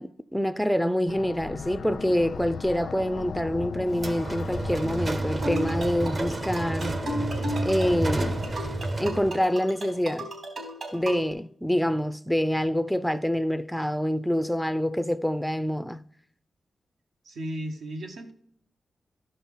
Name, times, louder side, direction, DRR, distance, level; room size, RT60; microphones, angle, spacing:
voice 1, 0.0-7.0 7.6-8.5 9.0-10.3 10.9-16.0, equal, ahead, 0.3 m, -26 dB
sound 1, 1.1-8.5, left 6 dB, 80° left, 0.3 m, -39 dB
sound 2, 3.9-9.4, right 2 dB, 40° right, 0.7 m, -30 dB
sound 3, 5.4-11.3, right 1 dB, 65° right, 3.5 m, -35 dB
voice 2, 17.2-18.3, equal, 90° right, 1.2 m, -35 dB
13.0 x 5.5 x 3.8 m
wide cardioid pair, 95°, 0 cm